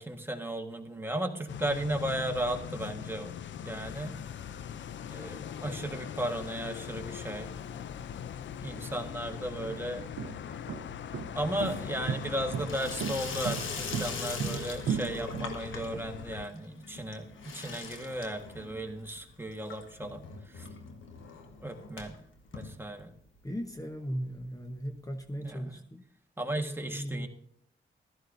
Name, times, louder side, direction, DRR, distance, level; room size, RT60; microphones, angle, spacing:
voice 1, 0.0-3.3 3.6-4.1 5.1-7.5 8.6-10.0 11.3-20.7 21.6-22.2 22.5-23.1 25.4-25.7 26.4-27.3, right 1 dB, 10° right, 4 dB, 1.5 m, -35 dB
sound 1, 1.5-16.5, left 9 dB, 70° left, 0.5 m, -41 dB
Water tap faucet / Sink (filling or washing), 6.2-7.0 7.3-7.9 8.1-23.4 23.8-23.9 24.0-24.1 24.4-24.5 25.5-25.6, left 4 dB, 85° left, 1.4 m, -43 dB
sound 2, 8.7-8.8 9.5-16.0, right 8 dB, 65° right, 0.5 m, -35 dB
voice 2, 23.4-26.0 26.5-27.3, equal, 15° left, 5 dB, 1.0 m, -37 dB
15.5 x 13.0 x 2.7 m, 0.71 s
cardioid pair, 65°, 20 cm